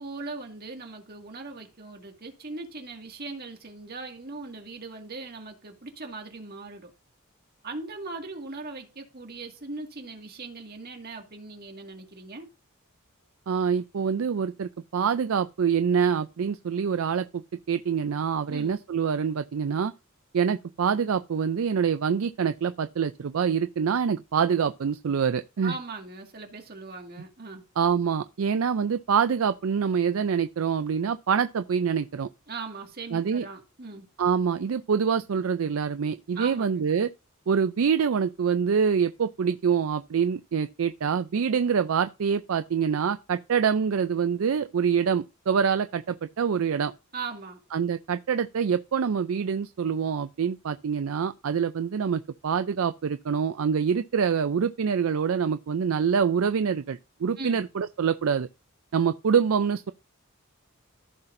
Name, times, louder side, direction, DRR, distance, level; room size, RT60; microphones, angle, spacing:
voice 1, 0.0-6.9 7.6-12.5 18.5-18.7 25.6-27.6 32.5-34.1 36.4-36.9 47.1-47.6 57.4-57.6, right 3 dB, 50° right, 2.0 m, -39 dB
voice 2, 13.5-19.9 20.3-25.7 27.8-32.3 33.1-33.5 34.2-37.1 37.5-46.9 47.7-58.5 58.9-59.9, right 6 dB, 75° right, 0.4 m, -25 dB
14.5 x 5.8 x 2.6 m
head